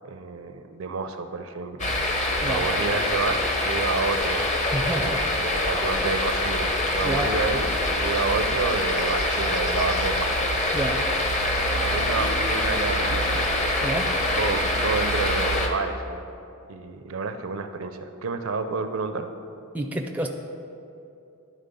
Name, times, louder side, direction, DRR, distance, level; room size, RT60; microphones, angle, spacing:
voice 1, 0.0-1.9 2.5-4.4 5.3-10.3 11.8-13.3 14.3-16.3 16.7-19.3, right 4 dB, 70° right, 8 dB, 0.5 m, -29 dB
sound 1, 1.8-15.7, left 1 dB, 35° left, 0.7 m, -25 dB
voice 2, 4.6-5.5 7.0-7.3 10.7-11.0 12.2-12.3 13.8-14.1 19.7-20.3, right 1 dB, 5° right, 2 dB, 0.4 m, -29 dB
11.0 x 4.1 x 5.3 m, 2.7 s
head